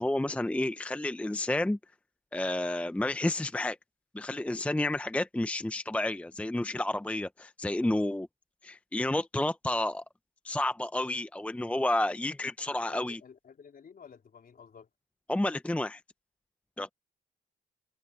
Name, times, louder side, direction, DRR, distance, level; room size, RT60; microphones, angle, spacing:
voice 1, 0.0-1.8 2.3-3.8 4.1-8.3 8.6-10.0 10.4-13.2 15.3-16.0 16.8-16.9, left 1 dB, 5° left, 0.7 m, -30 dB
voice 2, 12.9-14.9, left 6 dB, 45° left, 3.8 m, -52 dB
open air
cardioid pair, 90°, 20 cm